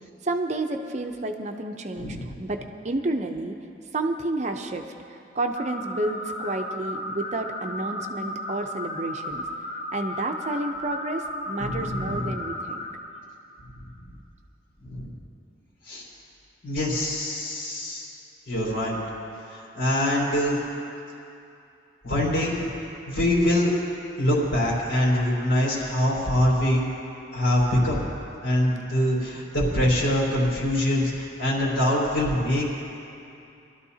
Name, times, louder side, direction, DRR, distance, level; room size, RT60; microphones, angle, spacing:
voice 1, 0.2-3.6 3.9-9.5 9.9-12.8, right 2 dB, 40° right, 4 dB, 0.6 m, -30 dB
voice 2, 1.9-2.2 11.6-12.3 14.8-15.1 15.9-16.0 16.6-18.1 18.5-19.0 19.5-20.6 22.0-22.7 23.1-23.7 24.2-26.8 27.3-28.1 28.4-32.8, left 1 dB, 80° left, -4 dB, 4.0 m, -24 dB
sound 1, 5.5-12.9, left 1 dB, 50° left, 1.5 m, -34 dB
23.0 x 13.0 x 2.8 m, 2.6 s
head